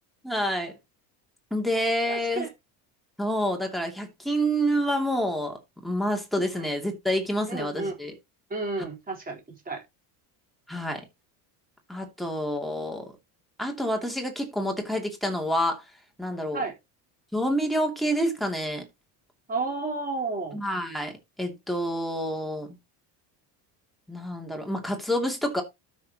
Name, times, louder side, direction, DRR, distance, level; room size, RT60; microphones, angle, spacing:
voice 1, 0.2-0.7 1.5-2.5 3.2-5.6 5.8-8.1 10.7-11.0 11.9-13.1 13.6-15.8 16.2-16.7 17.3-18.8 20.5-22.8 24.1-25.6, equal, ahead, 2.7 m, -28 dB
voice 2, 2.1-2.5 6.5-6.7 7.5-7.9 8.5-9.8 16.5-16.8 19.5-20.6, right 3 dB, 20° right, 4.1 m, -32 dB
13.0 x 6.5 x 3.0 m
cardioid pair, 145°, 44 cm